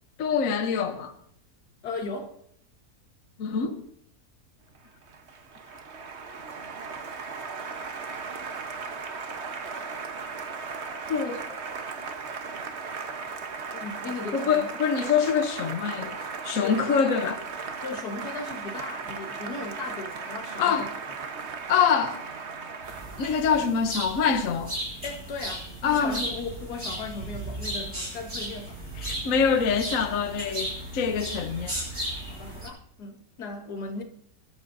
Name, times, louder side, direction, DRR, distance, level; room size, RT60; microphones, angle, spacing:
voice 1, 0.2-1.1 3.4-3.8 11.1-11.4 14.3-16.2 16.4-17.4 20.6-20.9 21.7-22.2 23.2-24.7 25.8-26.2 29.0-32.1, left 6 dB, 60° left, 1.2 m, -25 dB
voice 2, 1.8-2.4 13.7-14.7 16.6-17.1 17.8-21.0 25.0-28.8 32.3-34.0, left 3 dB, 80° left, 1.8 m, -37 dB
Applause, 4.8-23.6, right 5 dB, 45° right, 1.2 m, -37 dB
sound 1, 22.8-32.7, right 1 dB, 30° right, 7.3 m, -35 dB
26.0 x 12.5 x 2.6 m
omnidirectional pair, 1.7 m